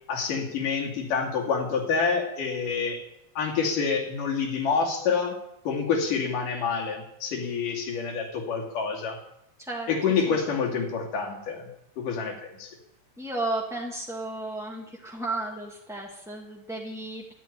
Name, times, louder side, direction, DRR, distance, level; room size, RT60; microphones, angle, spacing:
voice 1, 0.1-3.0 3.4-5.4 5.7-9.2 9.9-11.7 12.0-12.7, left 5 dB, 90° left, 1 dB, 4.2 m, -27 dB
voice 2, 9.6-9.9 10.3-10.4 13.2-17.3, right 2 dB, ahead, -3 dB, 1.4 m, -33 dB
12.5 x 11.5 x 9.8 m, 0.86 s
omnidirectional pair, 3.6 m